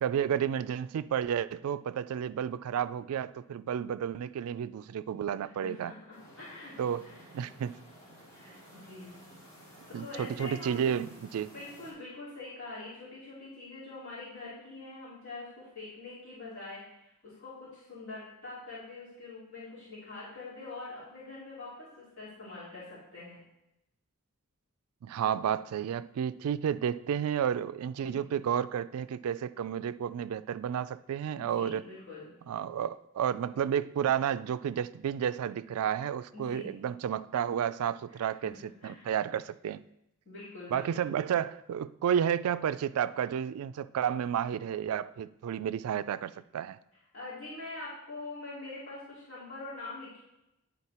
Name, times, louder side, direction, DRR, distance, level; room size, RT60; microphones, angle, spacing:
voice 1, 0.0-5.9 6.8-7.7 9.9-11.5 25.0-31.8 32.5-39.8 40.7-46.8, right 8 dB, 70° right, 0.3 m, -31 dB
voice 2, 5.4-6.7 7.0-7.1 8.4-9.2 9.9-11.0 11.5-23.4 28.0-28.2 31.4-32.3 36.3-36.7 38.1-38.5 38.8-39.1 40.2-41.1 47.1-50.2, left 3 dB, 60° left, 2.7 m, -44 dB
sound 1, 6.1-11.9, equal, 35° left, 2.9 m, -53 dB
9.7 x 4.0 x 4.3 m
head